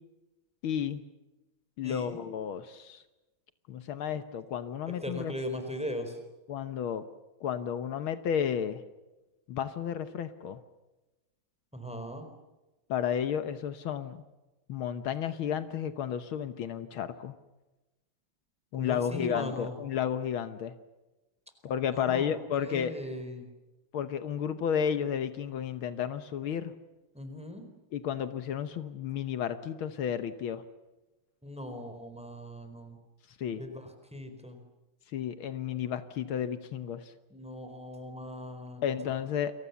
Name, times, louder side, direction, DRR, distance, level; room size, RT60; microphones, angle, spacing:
voice 1, 0.6-1.0 1.8-3.0 3.7-5.3 6.5-7.0 7.4-8.8 9.5-10.6 12.9-14.2 14.7-17.3 18.7-20.7 21.6-23.0 23.9-26.7 27.9-30.6 33.4-33.6 35.1-37.1 38.8-39.5, left 8 dB, 75° left, 11 dB, 1.9 m, -32 dB
voice 2, 1.8-2.2 5.0-6.2 11.7-12.3 18.8-19.8 21.9-22.3 22.6-23.5 27.1-27.6 31.4-33.0 33.5-34.6 37.3-39.1, equal, 5° right, 6 dB, 4.2 m, -39 dB
29.5 x 23.0 x 7.0 m, 1.1 s
omnidirectional pair, 2.3 m